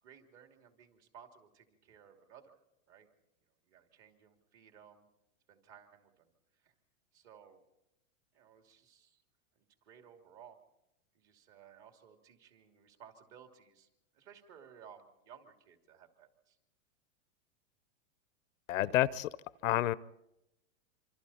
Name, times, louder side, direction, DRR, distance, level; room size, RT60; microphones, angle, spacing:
voice 1, 0.0-2.6 2.9-3.1 3.6-5.1 5.5-6.7 7.1-7.6 8.3-9.2 9.6-10.6 11.1-13.9 14.1-16.6, right 8 dB, 40° right, 5 dB, 2.9 m, -58 dB
voice 2, 18.7-19.3 19.6-20.0, left 14 dB, 75° left, 19 dB, 0.8 m, -29 dB
26.5 x 25.0 x 4.3 m, 0.87 s
hypercardioid pair, 140°, 40 cm